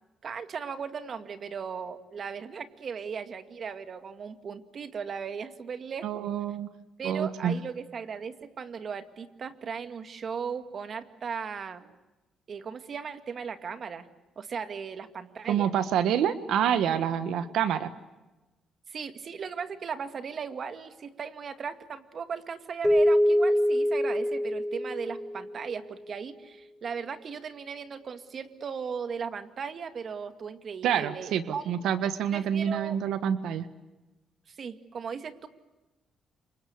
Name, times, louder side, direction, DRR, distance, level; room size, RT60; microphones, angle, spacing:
voice 1, 0.2-6.3 7.0-11.9 12.5-14.1 14.4-15.7 18.9-31.8 32.3-33.0 34.5-35.5, right 6 dB, 50° right, 9 dB, 2.2 m, -37 dB
voice 2, 6.0-6.7 7.0-7.6 15.5-17.9 30.8-33.7, right 9 dB, 80° right, 12 dB, 1.4 m, -27 dB
Keyboard (musical), 22.8-25.8, equal, 5° left, 1.3 m, -25 dB
28.5 x 25.0 x 8.3 m, 1.1 s
cardioid pair, 90°, 0 cm